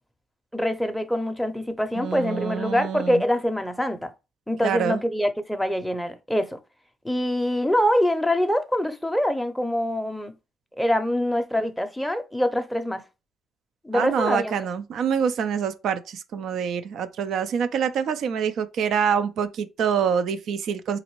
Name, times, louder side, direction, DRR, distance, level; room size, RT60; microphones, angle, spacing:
voice 1, 0.5-4.1 4.5-6.6 7.0-10.3 10.8-13.0 13.8-14.6, equal, 5° left, 0.6 m, -24 dB
voice 2, 2.0-3.2 4.6-5.0 13.9-21.0, right 7 dB, 75° right, 0.4 m, -26 dB
3.9 x 2.5 x 3.0 m
cardioid pair, 90°, 0 cm